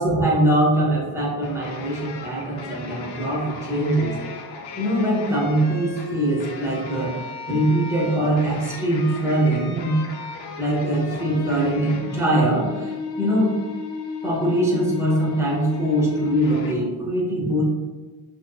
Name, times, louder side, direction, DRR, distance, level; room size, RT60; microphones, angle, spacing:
voice 1, 0.0-4.2 4.8-7.2 7.5-10.0 10.6-13.6 14.2-17.6, right 1 dB, 5° right, -5 dB, 0.7 m, -22 dB
sound 1, 1.4-16.7, left 4 dB, 70° left, 0.6 m, -35 dB
4.2 x 3.1 x 2.3 m, 1.3 s
wide cardioid pair, 175°, 42 cm